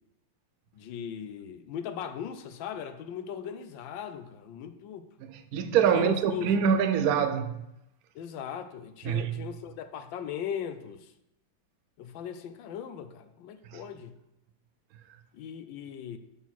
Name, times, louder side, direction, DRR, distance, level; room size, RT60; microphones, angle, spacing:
voice 1, 0.7-5.1 5.9-6.5 8.1-11.1 12.0-14.1 15.3-16.2, left 8 dB, 80° left, 1.4 m, -38 dB
voice 2, 5.2-7.6 9.0-9.4 13.7-13.8, right 7 dB, 75° right, 0.8 m, -25 dB
6.9 x 4.5 x 6.0 m
omnidirectional pair, 2.1 m